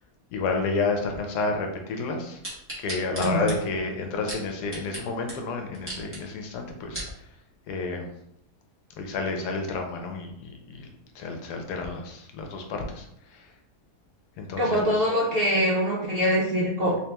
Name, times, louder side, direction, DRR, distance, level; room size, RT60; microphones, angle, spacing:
voice 1, 0.3-2.4 2.8-7.0 7.7-8.1 9.0-10.9 11.1-13.5 14.4-15.1, left 3 dB, 85° left, 4 dB, 1.3 m, -30 dB
sound 1, 2.4-5.0 5.3-5.4 5.7-6.2 6.7-7.1 7.8-7.9, right 1 dB, 10° right, 1.2 m, -36 dB
voice 2, 3.2-3.5 14.6-17.0, equal, 50° right, -4 dB, 0.7 m, -24 dB
3.3 x 2.9 x 3.4 m, 0.79 s
omnidirectional pair, 1.7 m